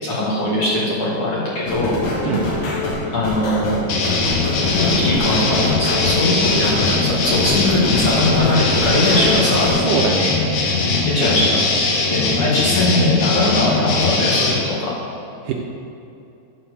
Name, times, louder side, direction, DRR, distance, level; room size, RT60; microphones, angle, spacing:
voice 1, 0.0-2.0 3.1-3.8 4.8-9.7 10.9-11.7 12.1-14.8, left 2 dB, 50° left, -7 dB, 2.1 m, -20 dB
sound 1, 1.7-9.9, left 2 dB, 70° left, 2.9 m, -25 dB
sound 2, 3.9-14.6, left 3 dB, 90° left, 2.9 m, -20 dB
voice 2, 9.1-10.7 15.4-15.5, right 5 dB, 80° right, 0 dB, 2.0 m, -23 dB
11.0 x 4.3 x 6.4 m, 2.6 s
omnidirectional pair, 4.1 m